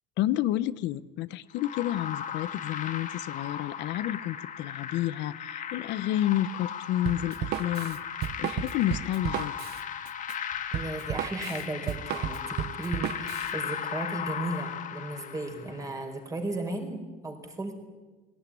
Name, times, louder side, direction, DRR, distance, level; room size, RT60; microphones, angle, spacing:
voice 1, 0.2-9.6, left 13 dB, 70° left, 15 dB, 0.8 m, -30 dB
sound 1, 1.6-15.9, left 8 dB, 40° left, 1.9 m, -37 dB
Drum kit, 7.1-13.5, right 12 dB, 55° right, 0.7 m, -34 dB
voice 2, 10.7-17.8, right 2 dB, 15° right, 5 dB, 4.5 m, -35 dB
20.5 x 18.0 x 9.9 m, 1.2 s
cardioid pair, 135°, 20 cm